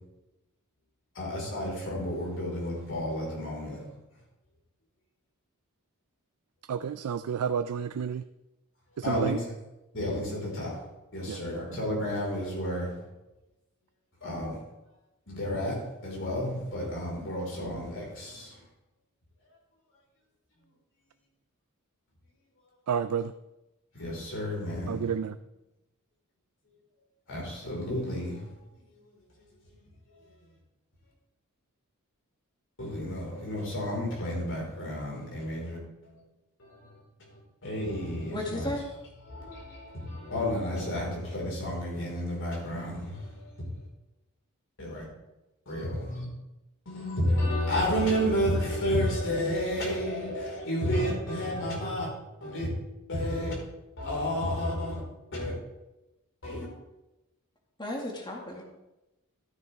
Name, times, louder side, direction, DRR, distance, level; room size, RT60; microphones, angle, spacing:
voice 1, 1.1-3.8 9.0-9.4 9.9-10.8 11.1-12.9 14.2-14.6 15.3-18.5 23.9-25.1 27.3-28.5 32.8-35.8 36.1-36.2 36.6-36.8 37.3-38.7 39.3-43.6 44.8-45.0 45.7-46.2 46.9-52.1 52.4-52.7 53.1-53.5 54.0-55.0 55.3-55.5 56.4-56.7, equal, 60° left, -3 dB, 4.6 m, -31 dB
voice 2, 6.7-8.2 9.0-9.4 11.3-11.4 22.9-23.3 24.9-25.4, right 7 dB, 85° right, 11 dB, 0.4 m, -30 dB
voice 3, 38.3-38.8 57.8-58.6, left 1 dB, 20° left, 0 dB, 1.9 m, -34 dB
13.0 x 9.3 x 3.5 m, 0.96 s
head